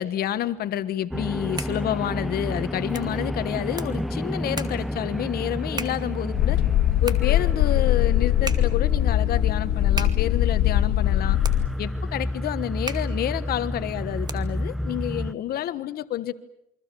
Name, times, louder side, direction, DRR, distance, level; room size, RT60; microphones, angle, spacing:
voice 1, 0.0-6.6 7.0-11.4 11.8-16.3, left 12 dB, 65° left, 13 dB, 1.4 m, -29 dB
sound 1, 1.1-15.3, left 1 dB, ahead, 0.9 m, -31 dB
sound 2, 1.2-14.7, right 3 dB, 25° right, 2.3 m, -41 dB
sound 3, 6.3-11.7, left 14 dB, 85° left, 1.9 m, -21 dB
28.5 x 24.5 x 7.0 m, 0.81 s
cardioid pair, 110°, 17 cm